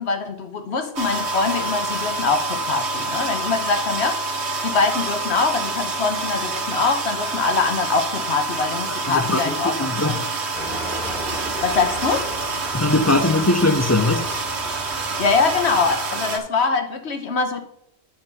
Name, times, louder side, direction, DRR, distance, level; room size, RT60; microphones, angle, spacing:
voice 1, 0.0-4.2 4.6-10.2 11.6-12.3 15.2-17.6, left 4 dB, 75° left, 1.3 m, -23 dB
sound 1, 1.0-16.4, right 3 dB, 85° right, 1.4 m, -27 dB
voice 2, 9.1-10.3 12.7-14.3, left 2 dB, 25° left, 0.4 m, -20 dB
sound 2, 10.5-15.8, equal, 40° left, 2.9 m, -35 dB
9.1 x 4.9 x 5.4 m
omnidirectional pair, 1.1 m